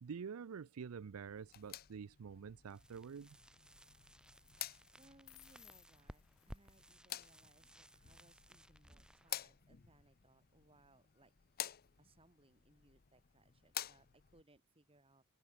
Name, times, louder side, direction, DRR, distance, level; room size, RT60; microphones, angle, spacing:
voice 1, 0.0-3.4, right 6 dB, 75° right, 0.4 m, -48 dB
sound 1, 1.4-14.4, left 13 dB, 45° left, 0.6 m, -51 dB
sound 2, 1.5-1.9 4.2-4.5 4.9-6.9, left 18 dB, 70° left, 2.3 m, -64 dB
sound 3, 2.6-10.4, equal, 5° right, 4.4 m, -60 dB
voice 2, 4.9-11.3 12.0-15.2, right 2 dB, 25° right, 4.4 m, -69 dB
open air
head